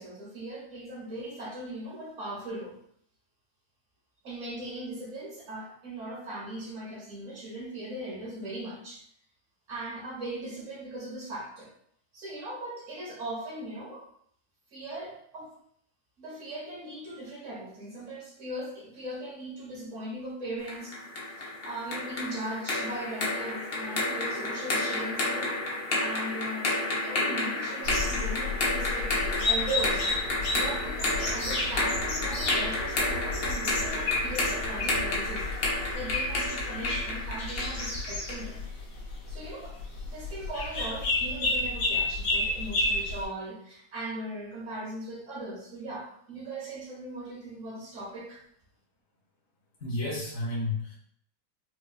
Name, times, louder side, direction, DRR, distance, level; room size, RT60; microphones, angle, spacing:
voice 1, 0.0-2.8 4.2-9.0 9.7-11.7 12.1-14.1 14.7-15.5 16.2-21.0 21.4-25.6 26.0-26.7 27.0-30.1 30.5-35.5 35.9-38.6 39.3-39.8 40.0-48.4, right 1 dB, 50° right, -4 dB, 1.3 m, -39 dB
sound 1, 20.7-38.5, left 2 dB, 70° left, 0.5 m, -31 dB
sound 2, 27.8-43.3, left 2 dB, 90° left, 1.5 m, -31 dB
voice 2, 49.8-50.9, left 2 dB, 50° left, -5 dB, 0.9 m, -31 dB
4.7 x 2.2 x 2.3 m, 0.67 s
omnidirectional pair, 1.9 m